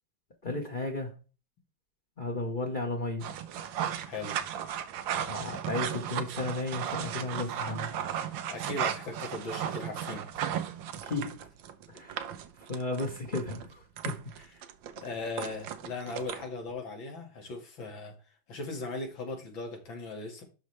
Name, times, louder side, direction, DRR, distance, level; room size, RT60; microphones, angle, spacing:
voice 1, 0.4-1.2 2.2-3.3 5.2-7.9 11.0-11.4 11.9-12.3 12.6-14.3, left 2 dB, 30° left, 1.3 m, -34 dB
sound 1, 3.2-16.7, right 9 dB, 75° right, 1.5 m, -35 dB
voice 2, 4.0-4.4 8.5-10.3 15.0-18.1 18.5-20.4, left 3 dB, 70° left, 2.9 m, -38 dB
12.0 x 4.6 x 3.3 m
omnidirectional pair, 2.2 m